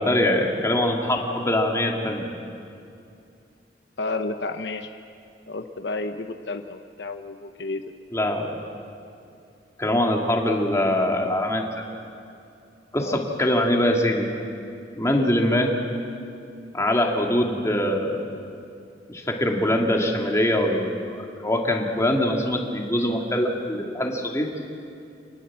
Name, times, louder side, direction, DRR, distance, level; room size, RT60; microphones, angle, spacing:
voice 1, 0.0-2.3 8.1-8.5 9.8-11.8 12.9-14.3 15.0-15.7 16.7-18.2 19.1-24.5, left 1 dB, 15° left, 1 dB, 2.5 m, -23 dB
voice 2, 4.0-4.9 5.5-7.8 13.0-13.2 15.1-15.3, left 3 dB, 65° left, 7 dB, 0.9 m, -31 dB
27.5 x 20.0 x 7.5 m, 2.6 s
head